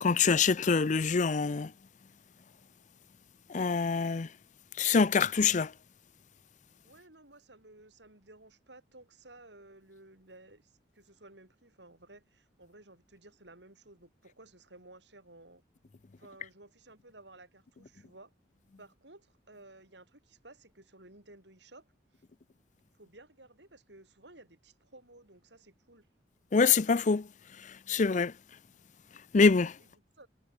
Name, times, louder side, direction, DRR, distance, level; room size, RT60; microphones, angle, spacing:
voice 1, 0.0-1.7 3.5-4.3 4.8-5.7 26.5-27.3 27.6-28.3 29.3-29.8, left 5 dB, 40° left, 0.5 m, -25 dB
voice 2, 6.8-15.6 16.2-18.3 18.8-22.2 22.9-26.1 29.8-30.3, right 2 dB, 70° right, 7.9 m, -55 dB
head